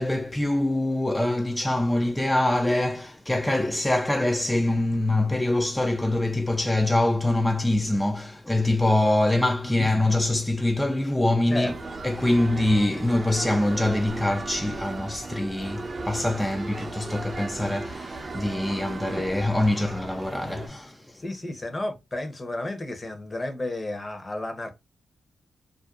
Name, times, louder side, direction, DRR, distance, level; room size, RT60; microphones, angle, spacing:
voice 1, 0.0-11.7 12.0-21.0, left 1 dB, 10° left, 0.3 m, -24 dB
sound 1, 11.6-20.7, right 3 dB, 40° right, 0.5 m, -36 dB
voice 2, 21.1-24.7, left 1 dB, 30° left, 0.7 m, -32 dB
2.5 x 2.2 x 2.3 m
cardioid pair, 70°, 0 cm